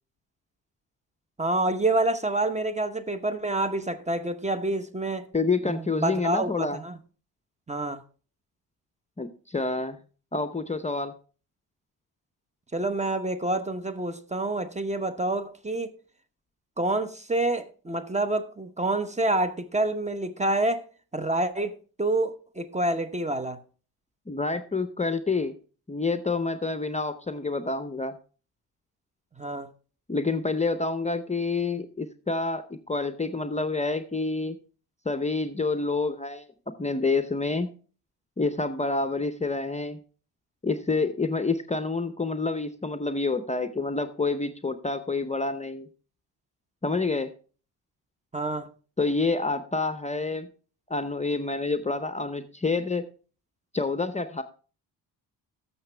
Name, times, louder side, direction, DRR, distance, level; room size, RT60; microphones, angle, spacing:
voice 1, 1.4-5.3 5.6-7.0 7.7-8.0 12.7-16.0 16.8-20.8 21.1-23.6 29.4-29.7 48.3-48.7, right 2 dB, 15° right, 0.9 m, -27 dB
voice 2, 5.3-6.8 9.2-10.0 10.3-11.1 24.3-25.5 25.9-28.2 30.1-34.6 35.0-36.5 36.8-37.7 38.4-40.0 40.6-45.9 46.8-47.3 49.0-50.5 50.9-53.0 53.7-54.4, left 3 dB, 15° left, 0.7 m, -28 dB
13.0 x 6.8 x 3.3 m
supercardioid pair, 70°, 41 cm